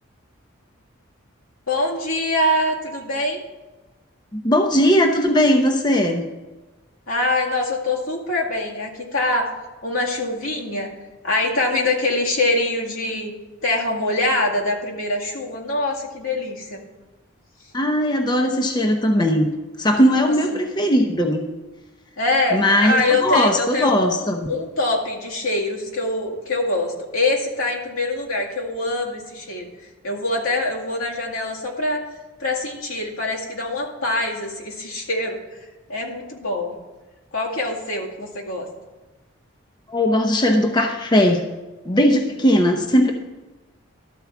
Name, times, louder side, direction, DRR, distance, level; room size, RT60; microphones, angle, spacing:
voice 1, 1.7-3.4 7.1-9.5 9.8-10.9 11.2-13.3 13.6-16.8 20.5-20.6 22.2-29.7 30.0-32.0 32.4-35.4 35.9-36.8 37.3-38.7, left 2 dB, 85° left, -3 dB, 2.2 m, -24 dB
voice 2, 4.3-6.2 17.7-19.5 19.8-21.4 22.5-24.5 39.9-41.4 41.9-43.1, equal, 20° left, 3 dB, 0.7 m, -18 dB
12.5 x 4.6 x 7.1 m, 1.1 s
head